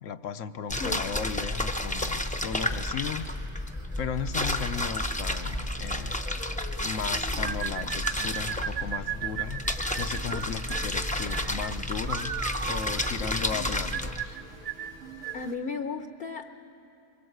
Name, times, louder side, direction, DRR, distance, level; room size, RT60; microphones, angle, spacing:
voice 1, 0.0-3.3 4.0-6.2 6.8-9.6 10.0-14.4, left 7 dB, 80° left, 9 dB, 1.1 m, -36 dB
sound 1, 0.7-14.2, left 1 dB, 10° left, 0.7 m, -31 dB
sound 2, 1.9-15.5, right 2 dB, 85° right, 2.4 m, -49 dB
sound 3, 7.4-15.5, right 9 dB, 50° right, 0.7 m, -36 dB
voice 2, 15.3-16.5, left 4 dB, 50° left, 7 dB, 0.9 m, -34 dB
24.0 x 22.0 x 7.9 m, 2.8 s
omnidirectional pair, 1.3 m